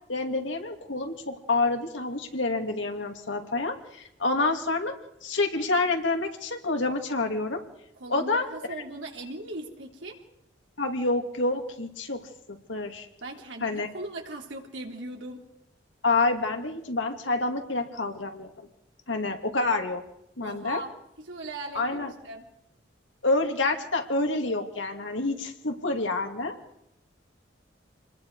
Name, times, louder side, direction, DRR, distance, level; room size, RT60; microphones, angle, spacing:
voice 1, 0.1-4.9 5.2-7.6 8.1-8.5 10.8-13.1 13.6-13.9 16.0-18.7 19.1-20.0 20.4-20.8 21.7-22.1 23.2-26.6, left 3 dB, 80° left, 4 dB, 2.7 m, -28 dB
voice 2, 8.0-10.2 13.2-15.4 20.4-20.9 21.2-22.4, right 2 dB, 75° right, 1 dB, 3.6 m, -39 dB
27.5 x 21.0 x 4.9 m, 0.79 s
head